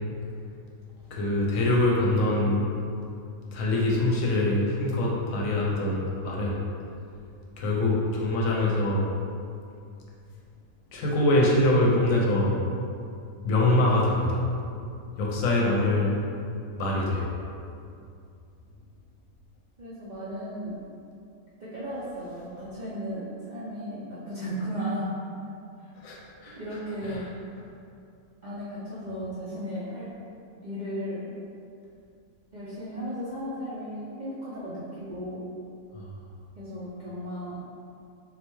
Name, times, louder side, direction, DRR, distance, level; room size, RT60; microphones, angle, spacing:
voice 1, 1.1-2.6 3.5-6.6 7.6-9.1 10.9-12.6 13.4-14.5 15.2-16.2 16.8-17.3 26.0-26.6 27.1-27.2 35.9-36.1, left 1 dB, 75° left, -3 dB, 1.0 m, -24 dB
voice 2, 19.8-20.8 21.6-25.1 25.8-25.9 26.6-27.3 28.4-30.1 30.6-31.3 32.5-35.4 36.6-37.6, equal, 55° right, -11 dB, 0.5 m, -35 dB
4.0 x 2.2 x 3.0 m, 2.5 s
omnidirectional pair, 1.5 m